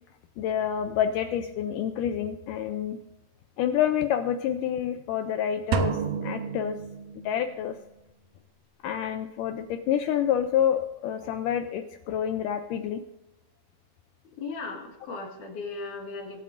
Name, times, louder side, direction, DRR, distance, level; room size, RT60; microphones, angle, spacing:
voice 1, 0.4-3.0 3.6-6.8 7.2-7.8 8.8-13.0, left 9 dB, 80° left, 8 dB, 1.9 m, -28 dB
sound 1, 5.7-7.5, right 6 dB, 70° right, 2.0 m, -30 dB
voice 2, 14.3-16.4, left 3 dB, 60° left, 1 dB, 3.0 m, -37 dB
24.0 x 8.9 x 2.6 m, 0.97 s
omnidirectional pair, 4.3 m